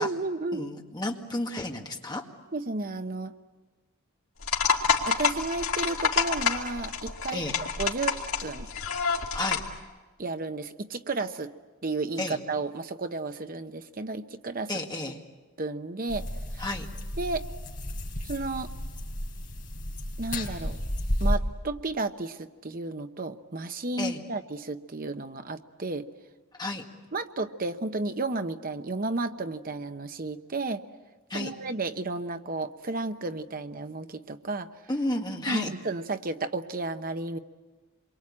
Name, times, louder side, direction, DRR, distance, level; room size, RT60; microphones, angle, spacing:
voice 1, 0.0-0.7 2.5-3.3 5.0-7.5 7.8-8.7 10.2-11.5 11.8-14.8 15.6-16.3 16.5-16.7 17.2-17.4 18.2-18.7 20.2-20.8 21.2-26.1 27.1-30.8 31.3-34.7 35.5-37.4, right 3 dB, 40° right, 9 dB, 0.9 m, -32 dB
voice 2, 0.5-2.2 7.3-7.6 9.3-9.6 12.2-12.4 14.7-15.2 16.6-16.9 24.0-24.2 26.6-26.8 31.3-31.5 34.9-35.7, left 2 dB, 20° left, 2 dB, 1.9 m, -31 dB
sound 1, 4.4-9.7, left 6 dB, 75° left, 2.6 m, -28 dB
sound 2, 16.1-21.4, equal, 35° left, 4.2 m, -32 dB
27.5 x 23.5 x 8.7 m, 1.3 s
head